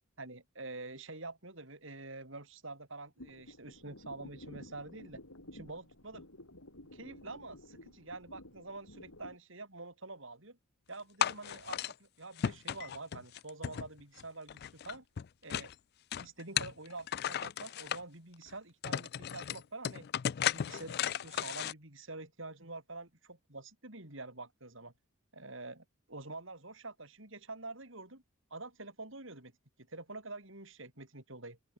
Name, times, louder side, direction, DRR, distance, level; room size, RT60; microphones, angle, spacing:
voice 1, 0.2-5.2 5.5-6.3 6.9-10.6 10.9-15.0 15.4-15.7 16.2-20.0 20.5-24.9 25.3-28.2 28.5-29.5 29.8-31.7, right 2 dB, 60° right, 4.7 m, -47 dB
sound 1, 3.2-9.4, left 1 dB, 85° left, 7.1 m, -53 dB
sound 2, 11.2-11.9 12.4-14.2 14.5-15.7 16.1-18.0 18.5-18.6 18.8-21.7, left 9 dB, 50° left, 0.3 m, -35 dB
open air
head